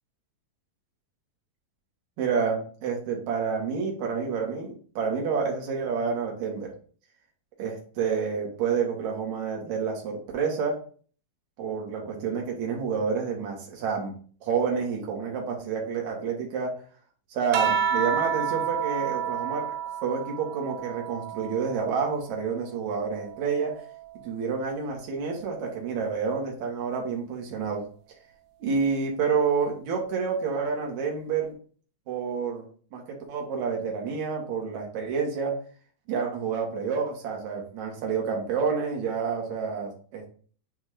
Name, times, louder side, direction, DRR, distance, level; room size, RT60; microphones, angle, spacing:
voice 1, 2.2-6.7 7.6-10.8 11.6-14.1 14.4-16.7 17.3-19.7 20.0-23.8 24.2-27.8 28.6-31.5 32.1-32.7 32.9-35.6 36.1-40.3, right 5 dB, 55° right, -1 dB, 2.3 m, -29 dB
sound 1, 17.5-22.3 22.8-24.5 25.7-26.2, right 8 dB, 80° right, 2.9 m, -31 dB
8.0 x 2.9 x 4.8 m, 0.43 s
omnidirectional pair, 5.0 m